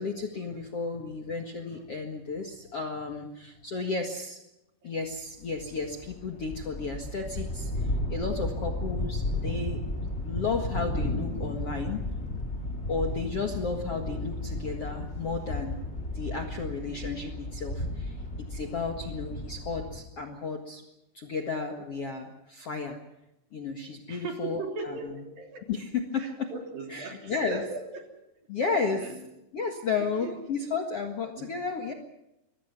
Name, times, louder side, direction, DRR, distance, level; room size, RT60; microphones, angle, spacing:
voice 1, 0.0-4.4 4.8-9.8 10.2-12.0 12.9-15.8 16.1-18.2 18.5-20.8 21.1-23.0 23.5-25.2 25.7-26.5 26.9-27.6 28.5-29.1 29.5-31.9, left 4 dB, 50° left, 3 dB, 1.9 m, -33 dB
sound 1, 5.4-20.0, left 1 dB, 15° left, 2.7 m, -34 dB
voice 2, 24.1-25.6 26.2-28.1 28.9-29.2 29.9-30.3 31.4-31.5, right 3 dB, 55° right, 3 dB, 4.8 m, -38 dB
25.5 x 22.5 x 6.1 m, 0.89 s
omnidirectional pair, 5.0 m